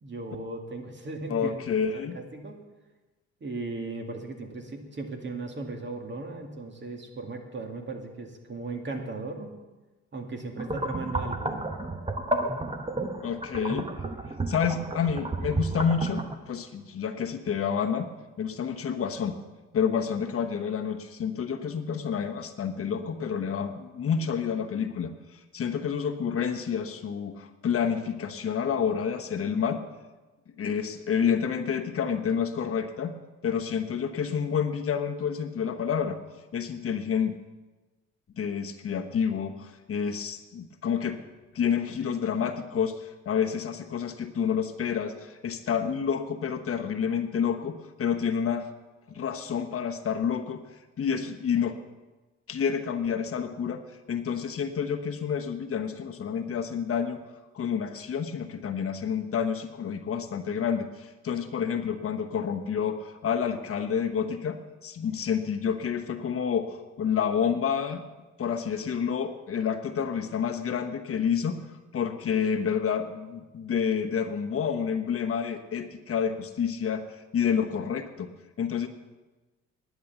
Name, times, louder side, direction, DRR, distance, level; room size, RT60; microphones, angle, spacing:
voice 1, 0.0-1.5 1.9-2.6 3.4-9.5 10.1-11.7, right 3 dB, 40° right, 3 dB, 2.1 m, -37 dB
voice 2, 1.3-2.2 13.2-13.9 14.5-18.1 18.4-19.3 19.7-29.8 30.6-33.1 33.4-36.2 36.5-37.3 38.4-41.2 41.5-48.7 49.1-50.6 51.0-51.8 52.5-53.8 54.1-57.2 57.5-68.1 68.4-71.7 71.9-78.3 78.6-78.9, left 7 dB, 50° left, 5 dB, 1.1 m, -29 dB
sound 1, 10.6-16.4, right 2 dB, 20° right, 1.2 m, -32 dB
11.0 x 9.4 x 7.0 m, 1.2 s
cardioid pair, 90°, 30 cm